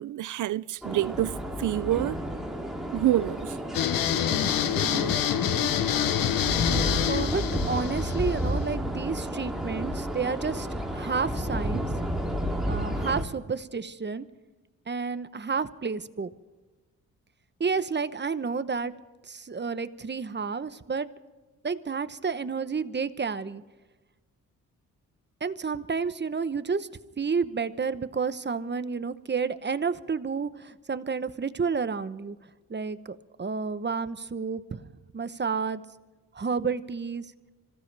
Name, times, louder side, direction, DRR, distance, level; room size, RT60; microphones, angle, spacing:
voice 1, 0.0-2.2 2.9-3.6, right 14 dB, 60° right, 0.4 m, -27 dB
sound 1, 0.8-13.2, equal, ahead, 2.8 m, -31 dB
sound 2, 3.7-8.7, left 10 dB, 70° left, 0.9 m, -27 dB
voice 2, 4.8-5.1 7.1-11.9 12.7-14.3 14.9-16.3 17.6-18.9 19.3-21.1 21.6-23.6 25.4-26.9 27.2-32.4 32.7-35.8 36.3-37.3, right 5 dB, 30° right, 1.0 m, -30 dB
25.5 x 16.5 x 3.4 m
supercardioid pair, 60°, 35 cm